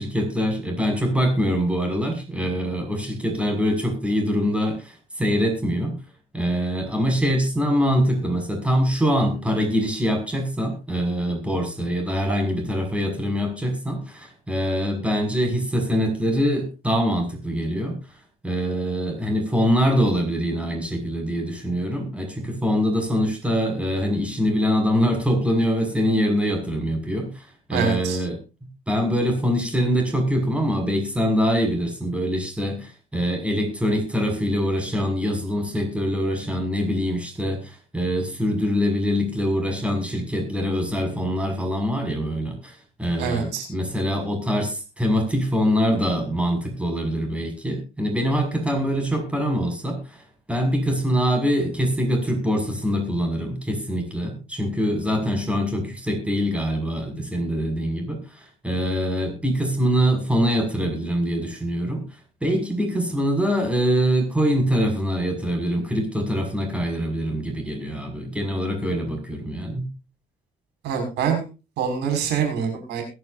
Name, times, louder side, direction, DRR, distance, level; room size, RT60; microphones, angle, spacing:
voice 1, 0.0-5.9 6.3-18.0 18.4-28.4 28.9-62.0 62.4-69.9, equal, 5° right, 4 dB, 5.9 m, -24 dB
voice 2, 27.7-28.2 43.2-43.7 70.8-71.4 71.8-73.0, right 7 dB, 80° right, 5 dB, 5.9 m, -25 dB
22.5 x 11.0 x 2.6 m, 0.30 s
cardioid pair, 110°, 17 cm